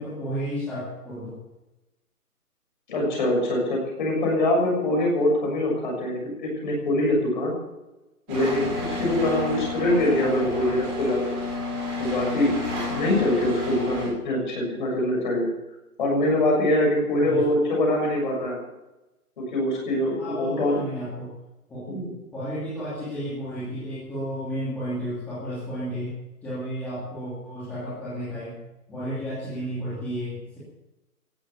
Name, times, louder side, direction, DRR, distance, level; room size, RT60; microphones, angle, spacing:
voice 1, 0.0-1.4 17.2-17.4 20.1-21.3 21.7-21.9 22.3-26.1 26.4-28.6 28.9-30.6, equal, 5° left, -11 dB, 2.6 m, -32 dB
voice 2, 2.9-7.5 8.3-11.5 12.0-15.5 16.0-18.6 19.4-20.8 21.9-22.1, left 1 dB, 30° left, 0 dB, 6.8 m, -24 dB
sound 1, 8.3-14.1, left 2 dB, 15° right, 5.5 m, -31 dB
16.0 x 13.0 x 7.0 m, 1.0 s
hypercardioid pair, 170°, 46 cm